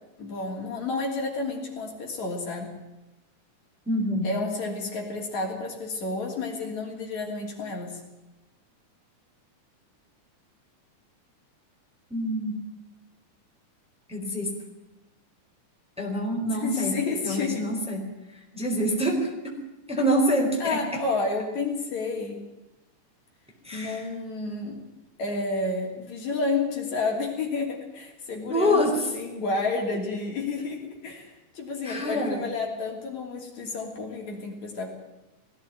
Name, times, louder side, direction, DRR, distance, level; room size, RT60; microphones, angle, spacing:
voice 1, 0.2-2.7 4.2-8.0 16.6-17.7 20.6-22.4 23.7-24.8 25.2-34.9, left 3 dB, 60° left, 1 dB, 4.4 m, -30 dB
voice 2, 3.9-4.3 12.1-12.5 14.1-14.5 16.0-16.9 17.2-18.0 18.5-19.6 19.9-20.8 23.6-24.1 28.5-28.9 31.8-32.4, equal, ahead, 0 dB, 4.2 m, -26 dB
19.5 x 16.0 x 9.3 m, 1.0 s
omnidirectional pair, 3.6 m